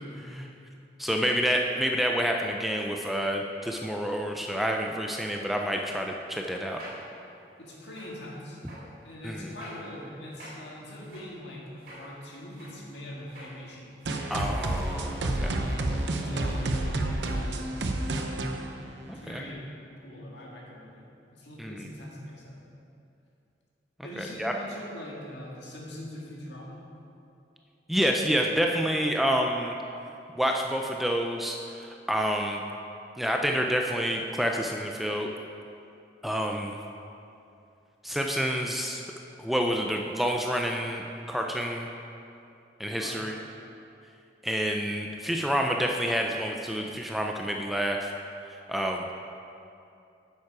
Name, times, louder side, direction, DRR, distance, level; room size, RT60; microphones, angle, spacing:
voice 1, 1.0-6.8 9.2-9.5 14.3-15.6 19.1-19.4 21.6-21.9 24.2-24.5 27.9-29.7 30.4-32.6 33.2-35.3 36.2-36.8 38.0-39.0 39.4-41.9 42.8-43.4 44.4-48.1 48.7-49.0, equal, ahead, 1 dB, 0.4 m, -28 dB
sound 1, 6.6-8.3 8.6-8.9 9.5-9.8 10.3-12.1 12.5-12.8 13.2-14.3 14.8-15.1 15.6-15.9 16.2-16.9 17.1-17.5 17.9-18.1, equal, 50° right, 2.4 m, -49 dB
voice 2, 7.6-8.6 9.0-14.0 16.0-17.7 19.1-19.7 20.0-22.7 24.0-26.8 43.0-43.3, left 1 dB, 75° left, -3 dB, 1.8 m, -42 dB
sound 2, 14.1-19.5, right 1 dB, 75° right, 0.7 m, -30 dB
9.2 x 7.3 x 4.7 m, 2.6 s
head